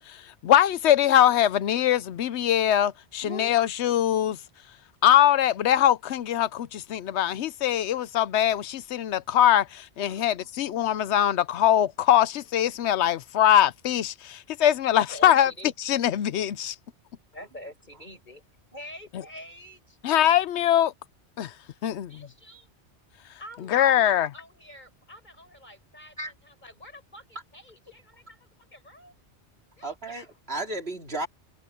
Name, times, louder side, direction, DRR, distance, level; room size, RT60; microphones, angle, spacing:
voice 1, 0.4-4.4 5.0-15.5 15.9-16.8 20.0-20.9 21.4-21.5 21.8-22.1 23.7-24.3, left 11 dB, 75° left, 0.9 m, -22 dB
voice 2, 3.2-3.5 10.1-10.3 26.2-26.3 29.8-31.3, right 2 dB, 60° right, 2.7 m, -34 dB
voice 3, 14.9-15.7 17.3-18.4 18.7-20.0 21.8-22.7 23.4-29.1 29.8-30.4, equal, 40° left, 8.3 m, -47 dB
omnidirectional pair, 1.2 m